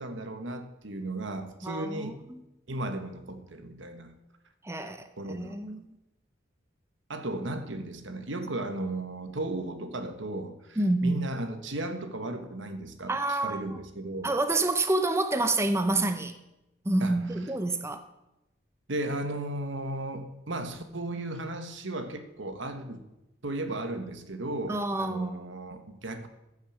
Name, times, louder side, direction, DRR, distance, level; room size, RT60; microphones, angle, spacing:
voice 1, 0.0-2.2 2.7-4.1 5.2-5.5 7.1-14.4 17.0-17.2 18.9-23.0 23.4-26.3, right 2 dB, 70° right, 1.3 m, -35 dB
voice 2, 1.6-2.4 4.6-5.8 10.8-11.3 13.1-13.8 14.2-16.3 16.8-18.0 24.7-25.4, right 2 dB, 15° right, 0.6 m, -28 dB
15.0 x 6.5 x 7.2 m
head